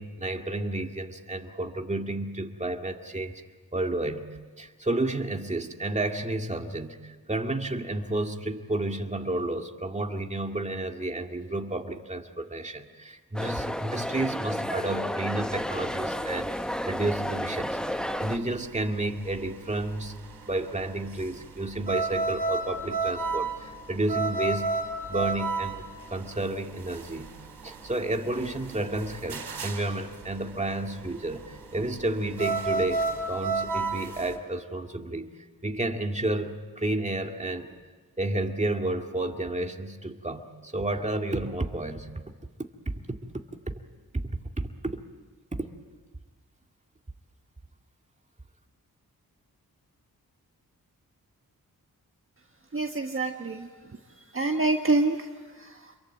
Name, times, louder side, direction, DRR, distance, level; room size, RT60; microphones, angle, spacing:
voice 1, 0.0-3.3 3.7-4.3 4.6-16.5 16.9-17.8 18.2-20.2 20.5-24.7 25.1-27.3 27.6-35.3 35.6-37.8 38.2-42.1 42.9-43.0 43.7-43.8 44.1-44.3 44.8-45.0 45.5-45.7, right 2 dB, 20° right, 4 dB, 2.1 m, -31 dB
sound 1, 13.4-18.4, equal, ahead, 0.9 m, -32 dB
sound 2, 15.4-34.3, right 3 dB, 85° right, 3.9 m, -32 dB
voice 2, 52.7-56.0, right 2 dB, 35° right, 3 dB, 1.5 m, -28 dB
27.5 x 22.5 x 9.1 m, 1.4 s
cardioid pair, 75°, 36 cm